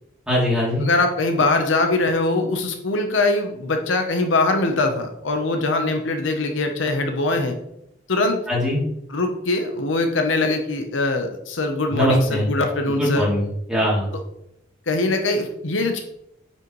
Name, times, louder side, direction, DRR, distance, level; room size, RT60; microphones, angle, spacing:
voice 1, 0.3-0.8 8.5-8.8 11.9-12.5 13.0-14.0, equal, 5° right, -7 dB, 2.9 m, -21 dB
voice 2, 0.8-7.5 8.1-8.4 9.1-13.3 14.9-16.0, left 2 dB, 70° left, 5 dB, 0.9 m, -22 dB
9.0 x 5.5 x 3.1 m, 0.79 s
head